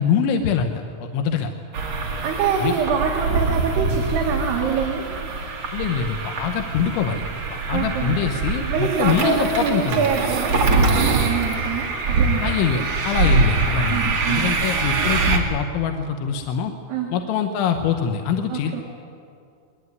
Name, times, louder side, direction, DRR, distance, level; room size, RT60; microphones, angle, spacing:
voice 1, 0.0-1.5 2.6-2.7 5.7-7.2 7.5-10.0 12.4-16.7 17.1-18.8, left 7 dB, 75° left, 5 dB, 3.2 m, -24 dB
sound 1, 1.7-15.4, right 3 dB, 40° right, 2.6 m, -23 dB
voice 2, 2.2-5.0 7.7-8.3 8.7-12.5 13.9-14.5 16.9-17.1 18.5-18.8, right 6 dB, 60° right, 0 dB, 3.7 m, -25 dB
22.0 x 21.0 x 9.5 m, 2.4 s
omnidirectional pair, 5.9 m